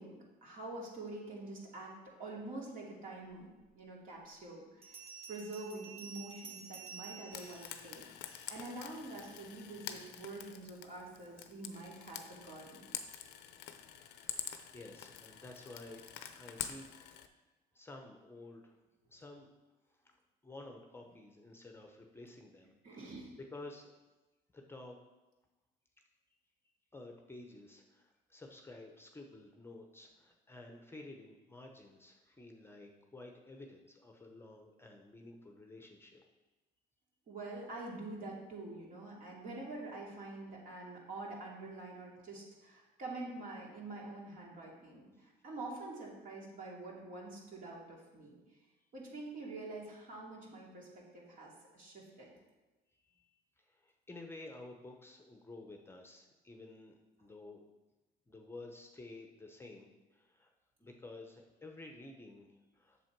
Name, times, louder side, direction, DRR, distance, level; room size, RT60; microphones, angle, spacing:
voice 1, 0.0-3.5 3.7-5.0 5.3-8.1 8.5-12.9 22.8-23.4 37.3-48.3 48.9-50.9 51.1-52.3, right 2 dB, 55° right, -3 dB, 2.6 m, -46 dB
Bell, 3.6-3.7 4.8-8.7, right 6 dB, 35° right, 1.6 m, -51 dB
Frying (food), 7.3-17.3, left 10 dB, 90° left, 0.6 m, -47 dB
voice 2, 13.9-17.2 17.7-18.8 19.1-19.5 20.0-20.2 20.4-22.7 23.0-23.1 23.5-23.9 24.5-25.0 26.9-36.2 52.9-53.2 53.6-57.6 58.3-60.5 60.8-63.0, left 2 dB, 15° left, 3 dB, 0.8 m, -52 dB
7.6 x 6.7 x 4.6 m, 1.1 s
cardioid pair, 110°, 17 cm